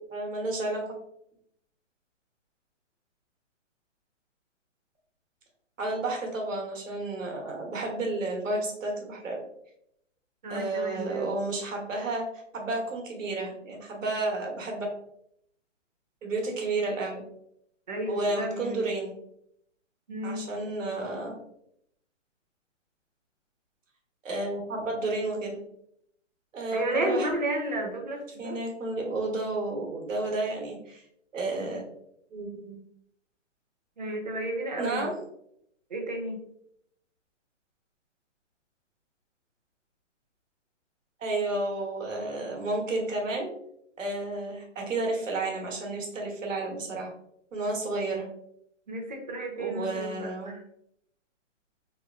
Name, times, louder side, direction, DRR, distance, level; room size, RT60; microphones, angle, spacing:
voice 1, 0.1-0.8 5.8-9.4 10.5-12.3 12.5-14.9 16.2-17.2 18.1-19.1 20.2-21.3 24.2-25.6 26.5-27.3 28.4-31.0 31.3-31.8 32.3-32.8 34.8-35.1 41.2-43.5 44.0-47.1 47.5-48.3 49.6-50.5, right 2 dB, 85° right, 1 dB, 1.0 m, -31 dB
voice 2, 10.4-11.3 17.9-18.9 20.1-20.5 26.7-28.6 34.0-35.1 35.9-36.4 48.9-50.6, right 1 dB, 35° right, 2 dB, 0.5 m, -32 dB
2.9 x 2.2 x 2.3 m, 0.74 s
hypercardioid pair, 165°, 38 cm